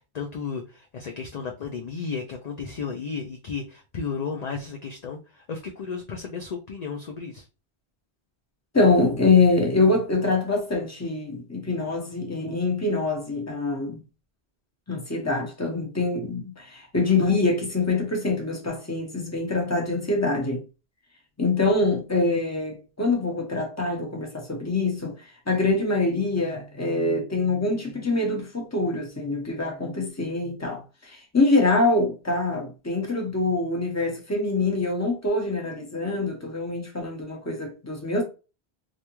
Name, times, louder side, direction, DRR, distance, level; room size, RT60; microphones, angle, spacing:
voice 1, 0.1-5.2 5.5-7.4, left 5 dB, 50° left, 0.6 m, -33 dB
voice 2, 8.7-14.0 14.9-20.6 21.4-25.2 25.5-38.2, left 3 dB, 15° left, 0.9 m, -24 dB
3.4 x 2.5 x 3.0 m
omnidirectional pair, 1.0 m